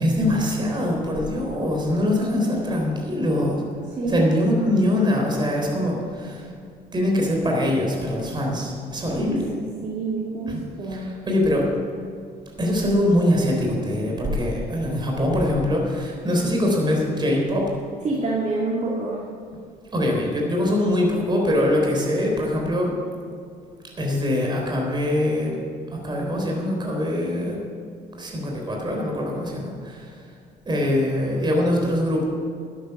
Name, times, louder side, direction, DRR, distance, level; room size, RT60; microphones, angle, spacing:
voice 1, 0.0-3.6 4.1-6.5 6.9-9.5 10.5-10.6 10.9-11.7 12.6-17.7 19.9-22.9 24.0-25.6 25.9-27.6 28.2-30.1 30.7-32.2, left 1 dB, 25° right, 0 dB, 3.8 m, -23 dB
voice 2, 4.0-4.3 9.1-11.1 18.0-19.2, right 3 dB, 45° right, -5 dB, 2.3 m, -27 dB
12.5 x 10.0 x 6.0 m, 2.3 s
cardioid pair, 110°, 17 cm